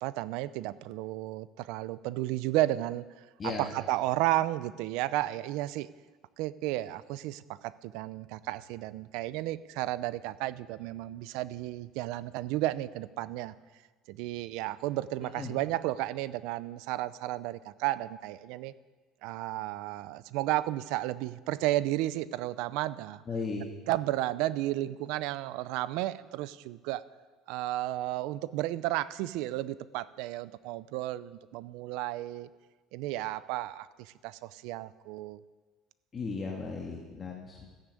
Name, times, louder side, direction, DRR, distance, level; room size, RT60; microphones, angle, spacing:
voice 1, 0.0-3.1 3.6-5.9 6.4-13.5 14.1-18.7 19.2-23.2 23.9-27.0 27.5-32.5 32.9-35.4, right 16 dB, 75° right, 17 dB, 0.6 m, -33 dB
voice 2, 3.4-3.7 15.2-15.6 23.3-23.6 36.1-37.7, left 4 dB, 25° left, -1 dB, 1.8 m, -36 dB
14.0 x 10.0 x 8.2 m, 1.3 s
cardioid pair, 140°, 0 cm